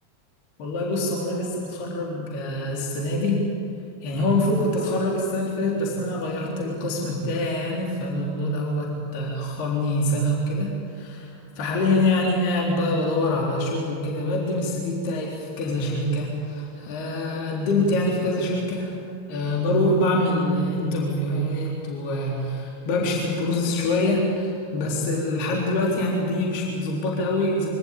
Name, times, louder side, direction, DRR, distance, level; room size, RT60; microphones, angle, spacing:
voice 1, 0.6-3.4 4.0-11.3 11.6-19.0 19.3-27.7, left 1 dB, 45° left, -2 dB, 3.6 m, -25 dB
24.5 x 18.0 x 8.5 m, 2.4 s
figure-of-eight pair, 90°, 0 cm